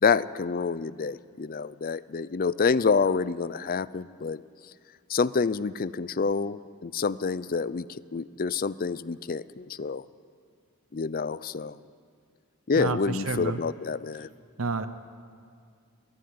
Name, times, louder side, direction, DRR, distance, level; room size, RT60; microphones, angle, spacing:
voice 1, 0.0-4.4 5.1-10.1 10.9-11.8 12.7-14.3, left 5 dB, 40° left, 18 dB, 0.5 m, -27 dB
voice 2, 12.8-13.6 14.6-14.9, right 4 dB, 65° right, 11 dB, 0.8 m, -29 dB
22.5 x 14.5 x 9.5 m, 2.2 s
head